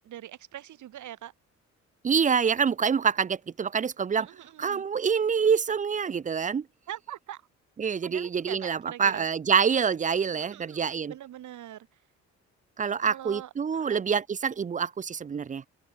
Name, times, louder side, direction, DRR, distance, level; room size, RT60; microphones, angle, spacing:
voice 1, 0.0-1.3 4.2-4.8 6.9-7.4 8.0-9.3 10.3-11.9 13.0-14.0, right 12 dB, 75° right, 5.1 m, -43 dB
voice 2, 2.0-4.3 4.6-6.6 7.8-11.1 12.8-15.6, right 6 dB, 25° right, 0.5 m, -26 dB
open air
cardioid pair, 90°, 30 cm